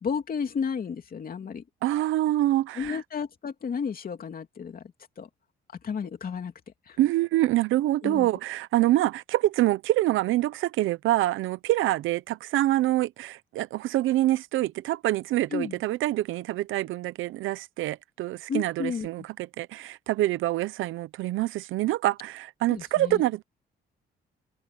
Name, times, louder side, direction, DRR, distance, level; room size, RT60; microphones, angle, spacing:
voice 1, 0.0-1.6 2.8-4.8 5.2-5.3 5.8-6.5 6.9-7.0 8.0-8.3 15.5-15.8 18.5-19.1 22.7-23.2, left 6 dB, 45° left, 2.8 m, -32 dB
voice 2, 1.8-3.0 7.0-23.4, right 15 dB, 85° right, 0.8 m, -26 dB
cardioid pair, 90°, 20 cm